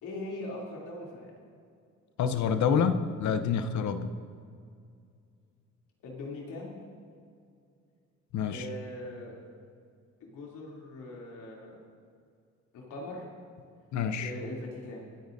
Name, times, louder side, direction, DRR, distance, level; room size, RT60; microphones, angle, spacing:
voice 1, 0.0-1.3 6.0-6.8 8.5-9.4 10.2-11.8 12.7-13.2 14.2-15.0, left 2 dB, 85° left, -3 dB, 3.1 m, -41 dB
voice 2, 2.2-4.1 8.3-8.7 13.9-14.3, left 6 dB, 70° left, 10 dB, 0.8 m, -27 dB
25.5 x 9.1 x 2.7 m, 2.3 s
cardioid pair, 90°, 30 cm